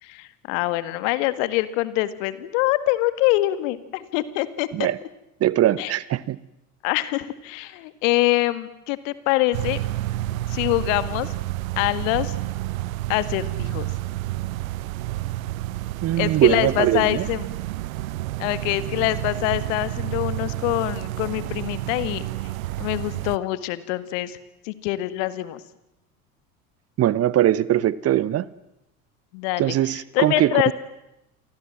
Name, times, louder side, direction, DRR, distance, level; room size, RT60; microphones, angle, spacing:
voice 1, 0.0-4.7 5.8-5.9 6.8-9.8 10.5-11.3 11.8-12.3 13.1-13.9 16.2-17.5 18.4-22.2 22.8-24.4 24.6-25.6 29.3-30.7, left 17 dB, 60° left, 1.9 m, -24 dB
voice 2, 5.4-6.4 16.0-17.3 27.0-28.4 29.6-30.7, right 13 dB, 35° right, 0.9 m, -21 dB
sound 1, 9.5-23.4, right 16 dB, 65° right, 0.9 m, -30 dB
29.0 x 24.0 x 7.7 m
figure-of-eight pair, 70°, 44 cm